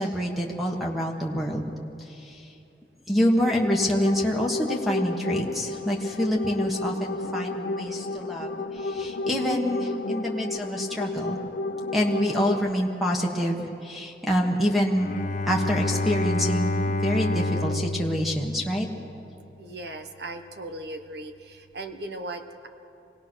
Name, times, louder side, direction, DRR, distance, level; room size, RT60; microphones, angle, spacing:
voice 1, 0.0-1.7 2.2-2.4 3.1-11.4 11.9-15.1 15.5-18.9, equal, ahead, 0 dB, 1.5 m, -26 dB
sound 1, 3.2-12.7, left 2 dB, 80° left, 0.9 m, -32 dB
Bowed string instrument, 15.0-19.3, left 2 dB, 40° left, 0.8 m, -28 dB
voice 2, 19.6-22.7, right 2 dB, 70° right, 7 dB, 1.2 m, -38 dB
25.0 x 18.5 x 6.3 m, 2.7 s
head